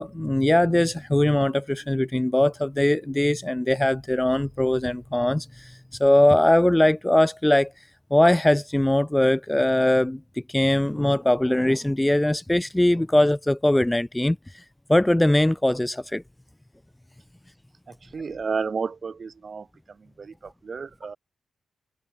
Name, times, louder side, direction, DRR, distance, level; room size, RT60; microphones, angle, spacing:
voice 1, 0.0-10.2 10.5-14.6 14.9-16.2, left 1 dB, 10° left, 3.2 m, -21 dB
voice 2, 18.1-19.7 20.2-21.2, right 5 dB, 50° right, 2.5 m, -31 dB
open air
supercardioid pair, 45°, 0 cm